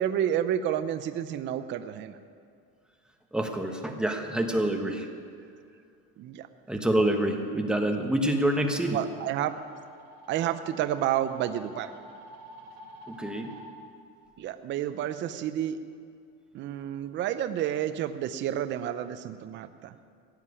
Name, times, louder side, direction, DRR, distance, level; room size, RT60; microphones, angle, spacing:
voice 1, 0.0-2.2 6.2-6.5 8.9-9.5 10.3-11.9 14.4-15.8 16.5-19.9, right 11 dB, 40° right, 10 dB, 0.6 m, -30 dB
voice 2, 3.3-5.1 6.7-9.0 13.1-13.5, right 1 dB, 5° right, 3 dB, 1.2 m, -27 dB
sound 1, 7.5-13.6, right 1 dB, 55° right, 3.9 m, -49 dB
16.5 x 7.5 x 9.7 m, 2.3 s
cardioid pair, 150°, 29 cm